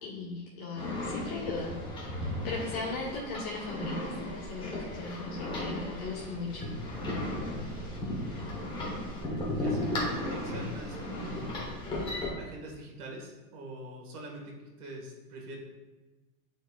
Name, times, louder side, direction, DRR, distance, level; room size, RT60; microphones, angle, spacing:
voice 1, 0.0-1.8 2.4-6.6, left 3 dB, 65° left, -7 dB, 1.7 m, -38 dB
sound 1, 0.8-12.3, left 1 dB, 10° left, 1.1 m, -35 dB
voice 2, 9.5-11.6 12.4-15.6, right 1 dB, 90° right, 0 dB, 1.8 m, -44 dB
9.3 x 4.3 x 2.4 m, 1.2 s
supercardioid pair, 155°, 45 cm